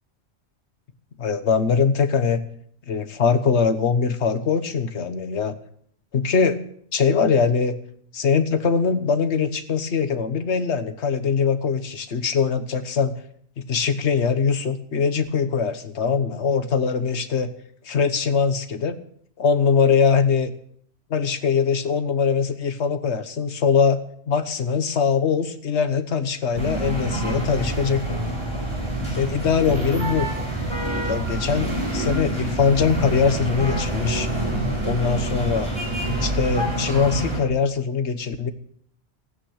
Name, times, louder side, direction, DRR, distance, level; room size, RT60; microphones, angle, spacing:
voice 1, 1.2-2.4 2.9-5.5 6.1-6.6 6.9-7.8 8.1-13.2 13.6-17.5 17.8-19.0 19.4-20.5 21.1-24.0 24.3-28.2 29.2-30.3 31.0-34.3 34.8-35.7 36.2-38.5, left 6 dB, 85° left, 10 dB, 1.4 m, -22 dB
sound 1, 26.5-37.4, right 1 dB, 25° right, 4.5 m, -26 dB
16.5 x 9.7 x 6.5 m, 0.65 s
omnidirectional pair, 1.1 m